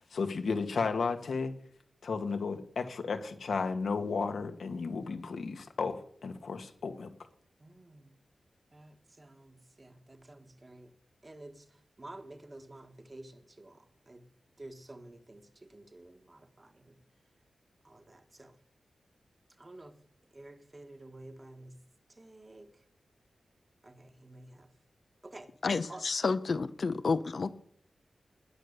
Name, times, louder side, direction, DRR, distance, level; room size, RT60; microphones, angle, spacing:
voice 1, 0.1-1.5 2.0-7.1, left 4 dB, 70° left, 1.9 m, -33 dB
voice 2, 7.6-8.2 8.7-10.9 11.2-14.3 14.6-17.0 17.8-18.6 19.6-20.0 20.3-21.8 22.1-22.9 23.8-24.7 25.2-25.5 25.9-26.0, right 2 dB, 25° right, 1.7 m, -51 dB
voice 3, 25.6-27.5, left 4 dB, 50° left, 0.8 m, -30 dB
19.0 x 10.5 x 6.8 m
wide cardioid pair, 165°, 0 cm